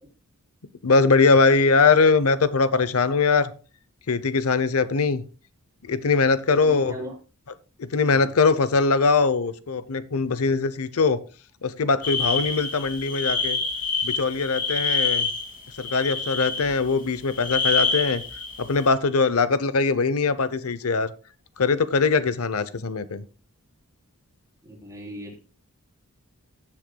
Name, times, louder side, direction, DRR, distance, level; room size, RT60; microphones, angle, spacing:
voice 1, 0.8-3.5 4.1-5.2 5.8-6.9 7.8-11.2 11.6-13.6 14.0-15.3 15.8-18.2 18.6-21.1 21.6-23.2, left 4 dB, 75° left, 0.7 m, -21 dB
voice 2, 6.5-7.1 8.1-8.3 24.6-25.4, left 1 dB, 15° right, 4.0 m, -37 dB
sound 1, 12.0-16.9 17.3-18.9, left 4 dB, 40° left, 2.0 m, -27 dB
15.5 x 7.8 x 2.3 m
head